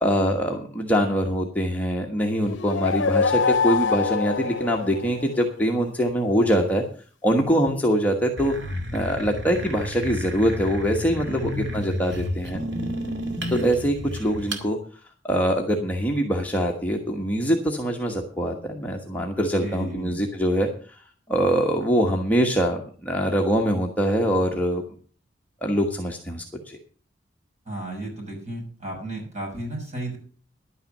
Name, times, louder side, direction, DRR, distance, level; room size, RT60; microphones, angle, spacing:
voice 1, 0.0-6.8 7.2-8.5 8.9-12.6 13.5-14.8 15.2-20.9 21.3-24.8 25.6-26.8, equal, 10° left, 0 dB, 1.2 m, -23 dB
sound 1, 2.5-5.4, left 5 dB, 75° left, 0.6 m, -24 dB
sound 2, 8.4-14.7, equal, 70° right, 2.2 m, -32 dB
voice 2, 11.3-12.0 19.6-20.3 27.6-30.2, right 1 dB, 40° right, 0 dB, 6.3 m, -33 dB
11.0 x 9.1 x 6.5 m, 0.42 s
head